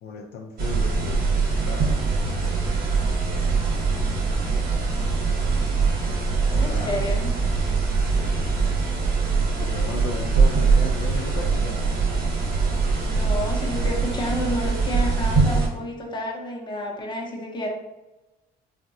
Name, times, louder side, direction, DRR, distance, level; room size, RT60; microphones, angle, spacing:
voice 1, 0.0-1.3 1.6-2.7 6.5-7.1 8.0-8.5 9.6-11.9, left 4 dB, 75° left, 1 dB, 0.4 m, -36 dB
sound 1, 0.6-15.7, right 4 dB, 65° right, 1.0 m, -23 dB
voice 2, 6.5-7.3 13.1-17.7, left 1 dB, 25° left, 0 dB, 0.7 m, -30 dB
3.6 x 2.1 x 2.6 m, 1.0 s
cardioid pair, 110°, 17 cm